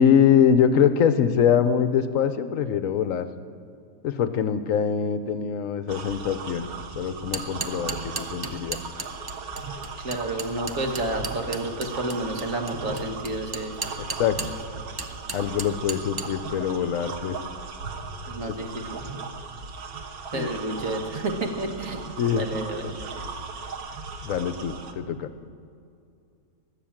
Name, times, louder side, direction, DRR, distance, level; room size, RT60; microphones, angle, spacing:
voice 1, 0.0-3.3 4.0-6.7 7.0-8.8 14.2-14.4 15.3-17.4 18.5-18.6 20.3-20.5 22.2-22.4 24.2-25.3, left 8 dB, 70° left, 11 dB, 1.0 m, -23 dB
sound 1, 5.9-24.9, right 4 dB, 85° right, 1.5 m, -37 dB
sound 2, 7.2-14.6 15.0-16.3, right 3 dB, 20° right, 0.7 m, -34 dB
voice 2, 10.0-13.8 18.3-19.0 20.3-22.1 22.3-23.0, right 2 dB, 65° right, 4 dB, 1.8 m, -30 dB
20.0 x 7.1 x 8.8 m, 2.5 s
omnidirectional pair, 1.5 m